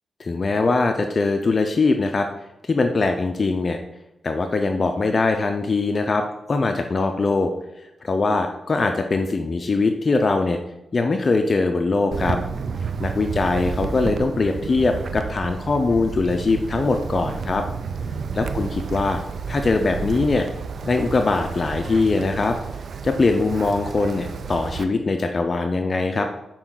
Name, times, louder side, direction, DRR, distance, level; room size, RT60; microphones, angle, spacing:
voice 1, 0.2-2.3 2.6-3.8 4.2-7.5 8.0-10.6 10.9-12.4 13.0-17.6 18.3-19.2 19.5-20.5 20.8-22.6 23.0-26.2, left 3 dB, 40° left, 5 dB, 0.4 m, -22 dB
Wind, 12.1-24.8, right 5 dB, 65° right, 0.3 m, -31 dB
6.0 x 4.4 x 3.8 m, 0.90 s
cardioid pair, 90°, 0 cm